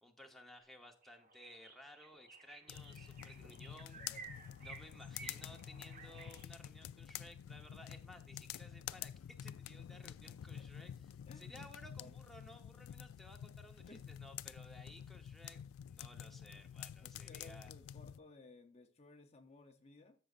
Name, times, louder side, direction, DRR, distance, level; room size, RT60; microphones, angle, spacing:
voice 1, 0.0-4.2 4.6-17.7, left 1 dB, ahead, 2 dB, 0.8 m, -58 dB
sound 1, 0.6-0.7 1.0-6.4, right 4 dB, 40° right, 1.3 m, -55 dB
sound 2, 2.7-18.2, left 10 dB, 85° left, 0.3 m, -49 dB
voice 2, 3.9-4.4 7.8-7.9 11.2-11.7 12.0-12.2 13.8-14.1 17.0-20.2, left 3 dB, 30° left, 5 dB, 0.6 m, -59 dB
13.0 x 6.2 x 2.4 m, 0.36 s
head